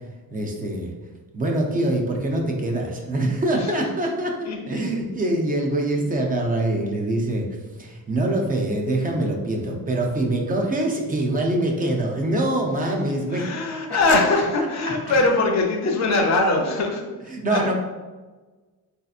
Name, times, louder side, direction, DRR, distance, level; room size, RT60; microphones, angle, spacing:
voice 1, 0.3-0.9 1.3-7.5 7.8-13.5 13.9-14.4 17.3-17.7, right 1 dB, 25° right, 1 dB, 0.4 m, -24 dB
voice 2, 13.0-17.1 17.5-17.6, left 2 dB, 45° left, 2 dB, 0.6 m, -22 dB
4.0 x 2.7 x 2.3 m, 1.3 s
wide cardioid pair, 175°, 37 cm